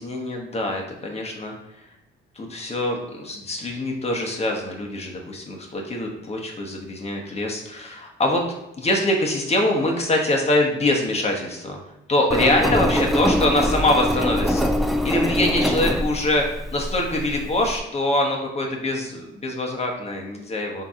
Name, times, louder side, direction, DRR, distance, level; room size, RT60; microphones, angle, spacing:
voice 1, 0.0-1.8 2.3-8.4 8.8-11.8 12.1-14.7 15.0-20.9, left 1 dB, 30° left, 1 dB, 1.0 m, -24 dB
Engine, 12.3-17.8, equal, ahead, 0.4 m, -23 dB
3.7 x 2.8 x 4.8 m, 0.93 s
cardioid pair, 90°, 20 cm